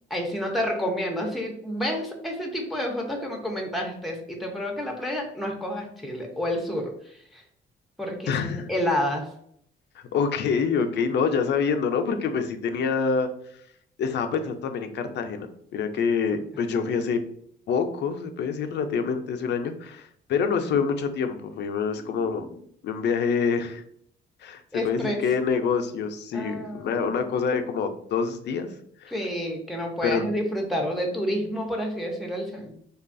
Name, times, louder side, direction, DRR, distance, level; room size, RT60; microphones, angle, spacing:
voice 1, 0.1-7.4 8.0-9.3 22.0-22.6 24.7-25.2 26.3-27.1 29.1-32.7, equal, ahead, 1 dB, 0.6 m, -29 dB
voice 2, 8.3-8.7 10.1-13.3 14.0-15.5 15.7-17.2 17.7-22.5 22.8-23.8 24.4-28.7 29.0-29.1 30.0-30.3, left 5 dB, 60° left, 7 dB, 0.4 m, -26 dB
2.7 x 2.3 x 2.5 m, 0.66 s
cardioid pair, 90°, 20 cm